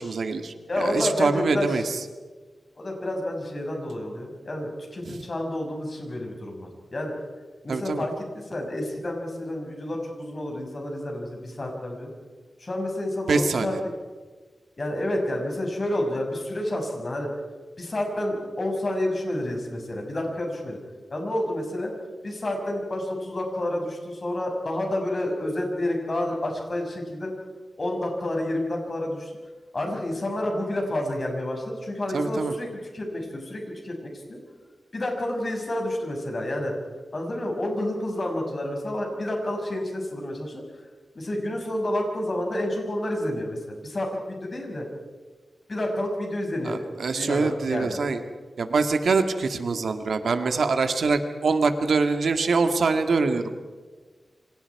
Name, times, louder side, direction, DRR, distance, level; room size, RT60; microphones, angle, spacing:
voice 1, 0.0-2.0 5.1-5.2 7.7-8.0 13.3-13.8 32.1-32.5 46.6-48.2 48.6-53.4, right 4 dB, 75° right, 7 dB, 1.8 m, -24 dB
voice 2, 0.7-1.9 2.8-7.1 7.6-12.1 12.6-13.7 14.8-17.3 17.8-20.8 21.1-21.9 22.2-27.3 27.8-29.3 29.7-32.7 32.9-34.4 34.9-36.7 37.1-40.6 41.1-44.9 45.7-46.8 47.1-48.0, left 1 dB, 35° left, 1 dB, 6.2 m, -29 dB
29.0 x 25.5 x 4.8 m, 1.4 s
wide cardioid pair, 130°, 0 cm